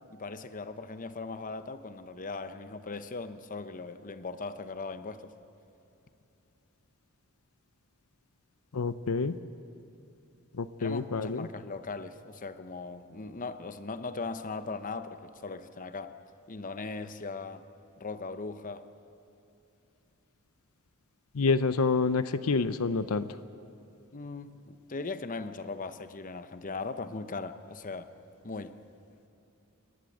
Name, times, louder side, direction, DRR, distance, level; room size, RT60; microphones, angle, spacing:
voice 1, 0.1-5.3 10.8-16.2 16.5-17.6 18.0-18.9 24.1-28.1 28.4-28.8, left 3 dB, 40° left, 11 dB, 0.8 m, -39 dB
voice 2, 8.7-9.4 10.6-11.5 21.3-23.3, left 4 dB, 80° left, 12 dB, 0.7 m, -28 dB
29.0 x 11.5 x 9.0 m, 2.7 s
head